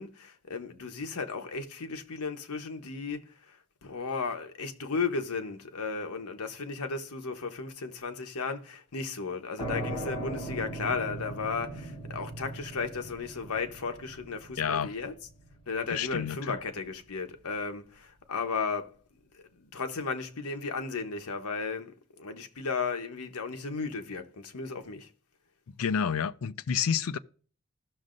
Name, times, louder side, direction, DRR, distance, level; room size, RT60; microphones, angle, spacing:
voice 1, 0.0-3.2 3.8-15.1 15.7-18.9 19.6-25.1, left 4 dB, 90° left, 1.0 m, -35 dB
sound 1, 9.6-17.0, right 1 dB, 25° left, 4.1 m, -39 dB
voice 2, 14.6-14.9 15.9-16.5 25.8-27.2, left 7 dB, 70° left, 0.4 m, -29 dB
16.0 x 6.4 x 2.5 m
head